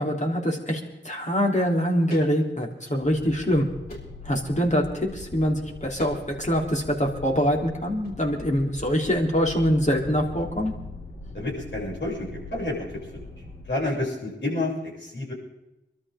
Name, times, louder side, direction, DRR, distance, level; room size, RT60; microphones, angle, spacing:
voice 1, 0.0-3.7 4.2-10.7, equal, 35° left, 0 dB, 3.6 m, -24 dB
sound 1, 2.1-2.3 2.7-3.4 3.9-4.2 6.0-6.2 6.5-7.0 8.0-8.2, equal, 55° left, 6.6 m, -43 dB
sound 2, 3.0-13.9, left 2 dB, 85° left, 7.9 m, -42 dB
voice 2, 11.3-13.0 13.7-15.3, left 2 dB, 70° left, -4 dB, 7.2 m, -29 dB
24.0 x 13.0 x 3.8 m, 0.94 s
cardioid pair, 45°, 20 cm